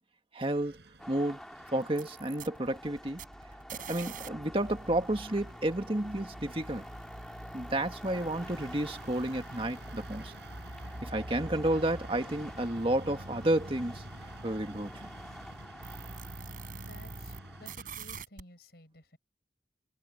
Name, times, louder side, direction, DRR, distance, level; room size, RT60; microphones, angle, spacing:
voice 1, 0.3-0.8 1.1-1.4 1.7-3.2 3.9-6.9 7.5-10.3 11.0-14.0 14.4-15.1, right 1 dB, 30° right, 1.8 m, -31 dB
sound 1, 0.5-18.2, right 1 dB, 75° right, 5.2 m, -49 dB
sound 2, 1.0-17.8, equal, 5° left, 1.9 m, -49 dB
sound 3, 1.8-4.3 4.5-17.4 17.6-18.4, right 3 dB, 50° right, 5.7 m, -48 dB
voice 2, 16.9-19.2, left 1 dB, 65° left, 5.3 m, -54 dB
head